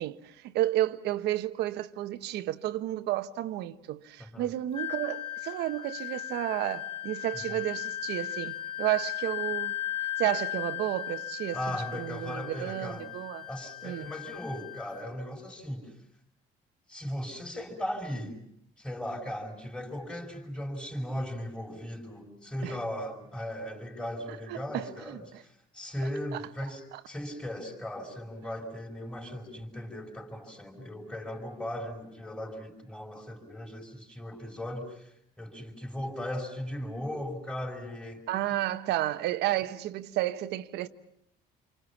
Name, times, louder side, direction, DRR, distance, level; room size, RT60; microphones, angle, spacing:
voice 1, 0.0-9.8 10.2-13.5 13.8-14.1 22.6-22.8 24.5-25.2 38.3-40.9, right 14 dB, 80° right, 1.2 m, -32 dB
voice 2, 4.2-4.5 7.3-7.7 11.5-13.1 13.5-15.9 16.9-18.4 18.8-38.5, left 1 dB, 5° left, 5.0 m, -38 dB
Wind instrument woodwind instrument, 4.7-15.1, left 13 dB, 35° left, 2.6 m, -37 dB
29.0 x 24.5 x 7.2 m
cardioid pair, 110°, 17 cm